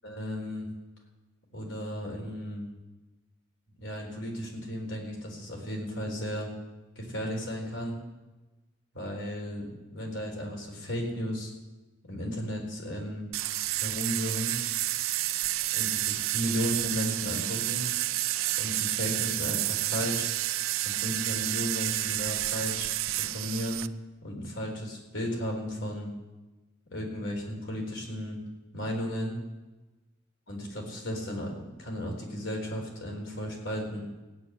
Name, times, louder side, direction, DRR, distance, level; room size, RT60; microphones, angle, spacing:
voice 1, 0.0-0.7 1.5-2.7 3.8-6.5 7.0-8.0 8.9-11.5 12.1-13.3 13.8-14.6 15.7-17.9 18.6-20.3 20.8-22.9 23.2-23.8 24.2-26.1 26.9-28.4 28.7-29.3 30.5-34.0, equal, 65° left, 1 dB, 4.0 m, -34 dB
sound 1, 13.3-23.9, right 15 dB, 85° right, 0.5 m, -30 dB
16.0 x 7.9 x 9.9 m, 1.1 s
head